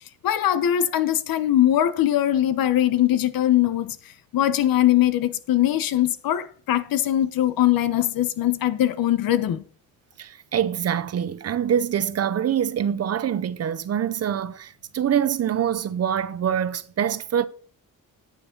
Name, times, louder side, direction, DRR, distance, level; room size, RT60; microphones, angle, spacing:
voice 1, 0.2-4.0 4.3-9.6, left 12 dB, 75° left, 1.1 m, -21 dB
voice 2, 10.2-17.5, right 9 dB, 45° right, 0.7 m, -25 dB
9.5 x 9.1 x 4.0 m
cardioid pair, 155°, 35 cm